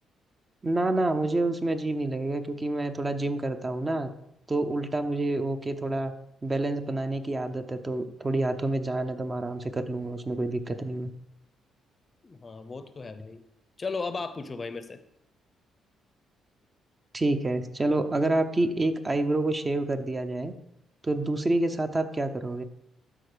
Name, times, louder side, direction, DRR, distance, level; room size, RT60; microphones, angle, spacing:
voice 1, 0.6-4.1 4.5-6.1 6.4-11.1 17.1-20.5 21.0-22.6, right 2 dB, 25° right, 7 dB, 0.8 m, -28 dB
voice 2, 12.2-13.4 13.8-15.0, left 4 dB, 35° left, 11 dB, 0.7 m, -35 dB
12.5 x 4.5 x 5.0 m, 0.78 s
cardioid pair, 90°, 0 cm